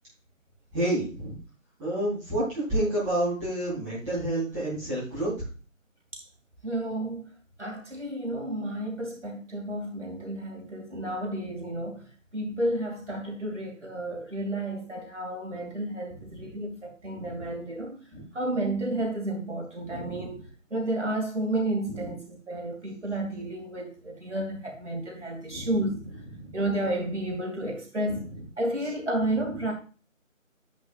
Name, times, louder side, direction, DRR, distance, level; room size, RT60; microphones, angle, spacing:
voice 1, 0.7-1.3 1.8-5.5 16.1-16.5 17.1-17.5 18.1-18.2 19.8-20.4 21.9-22.1 25.5-25.7 26.3-26.6 28.1-28.4, right 1 dB, 5° right, 4.0 m, -30 dB
voice 2, 6.6-7.3 7.6-12.0 12.3-18.0 18.3-20.4 20.7-26.0 26.5-28.2 28.6-29.7, right 1 dB, 60° right, 2.7 m, -31 dB
10.5 x 9.1 x 2.5 m
figure-of-eight pair, 160°, 40 cm